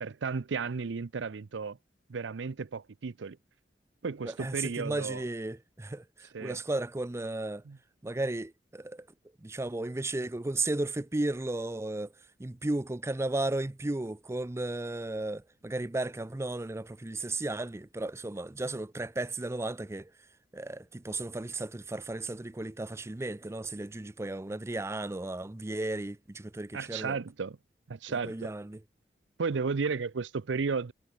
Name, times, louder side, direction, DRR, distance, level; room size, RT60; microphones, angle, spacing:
voice 1, 0.0-1.8 2.1-3.4 4.0-5.2 6.3-6.6 7.7-7.8 26.7-27.6 27.9-28.5 29.4-30.9, right 5 dB, 85° right, 0.6 m, -33 dB
voice 2, 4.2-7.6 8.0-9.1 9.4-12.1 12.4-20.1 20.5-27.2 28.1-28.8, right 2 dB, 15° right, 0.5 m, -34 dB
head